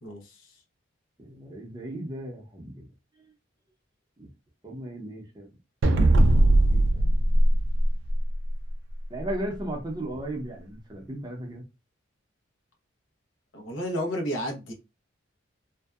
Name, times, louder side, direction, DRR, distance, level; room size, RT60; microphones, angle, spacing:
voice 1, 0.0-0.5 13.5-14.7, equal, 75° left, 0.8 m, -32 dB
voice 2, 1.2-2.8 4.2-4.3 4.6-5.5 6.3-7.0 9.1-11.6, right 1 dB, 20° right, 0.6 m, -36 dB
sound 1, 5.8-8.5, right 1 dB, 65° right, 0.4 m, -19 dB
2.6 x 2.1 x 2.3 m
head